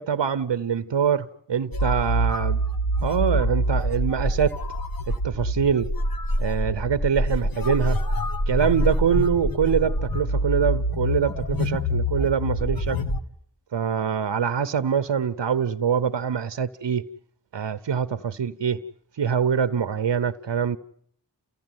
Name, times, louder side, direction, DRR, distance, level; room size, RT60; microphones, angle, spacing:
voice 1, 0.0-2.6 3.0-4.6 5.1-5.9 6.4-8.0 8.5-13.0 13.7-17.0 17.5-18.8 19.2-20.8, right 7 dB, 75° right, 0.9 m, -24 dB
sound 1, 1.7-13.2, equal, 50° left, 1.7 m, -25 dB
29.5 x 15.5 x 9.4 m
wide cardioid pair, 55°, 43 cm